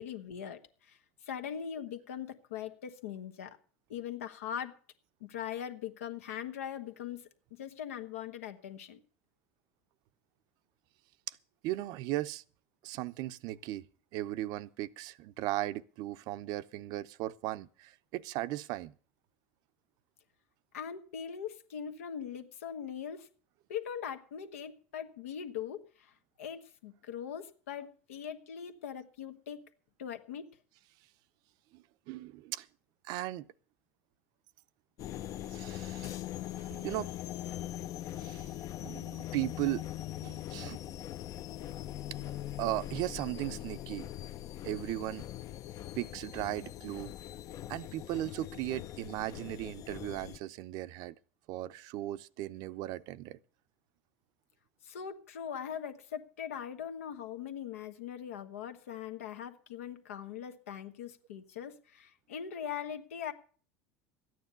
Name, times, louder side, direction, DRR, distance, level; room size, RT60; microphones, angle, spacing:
voice 1, 0.0-3.6 3.9-4.7 5.2-9.0 20.7-23.3 23.7-29.6 30.0-30.5 54.8-63.3, left 8 dB, 90° left, 1.3 m, -41 dB
voice 2, 11.6-12.4 12.8-13.8 14.1-18.9 31.7-32.7 33.0-33.5 35.5-36.2 36.6-37.1 38.2-38.5 38.8-39.8 40.2-40.8 42.2-44.1 44.6-45.3 46.0-47.1 47.7-51.2 51.5-53.4, right 16 dB, 60° right, 0.6 m, -37 dB
sound 1, 35.0-50.4, left 13 dB, 50° left, 0.6 m, -41 dB
13.0 x 9.4 x 6.8 m
hypercardioid pair, 90°, 7 cm